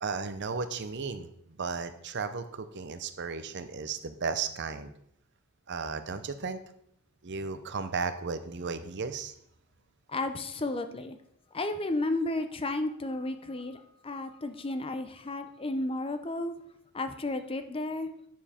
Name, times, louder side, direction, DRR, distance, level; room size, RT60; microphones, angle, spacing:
voice 1, 0.0-4.9 5.7-6.6 7.2-9.3, right 5 dB, 50° right, 11 dB, 0.7 m, -35 dB
voice 2, 10.1-11.2 11.5-16.5 16.9-18.1, left 2 dB, 25° left, 9 dB, 0.6 m, -33 dB
9.3 x 7.1 x 4.3 m, 0.70 s
head